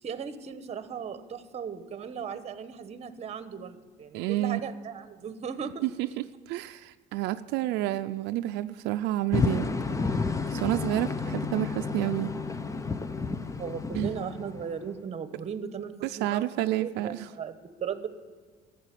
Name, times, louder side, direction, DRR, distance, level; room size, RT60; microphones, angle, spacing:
voice 1, 0.0-5.9 13.6-16.4 16.7-18.1, right 7 dB, 40° right, 11 dB, 1.1 m, -37 dB
voice 2, 4.1-4.6 5.8-6.1 6.5-9.7 10.5-12.3 13.9-14.1 16.0-17.3, right 15 dB, 90° right, 9 dB, 0.4 m, -29 dB
sound 1, 9.3-15.0, left 4 dB, 20° left, 0.6 m, -31 dB
13.0 x 7.5 x 9.9 m, 1.5 s
cardioid pair, 110°, 17 cm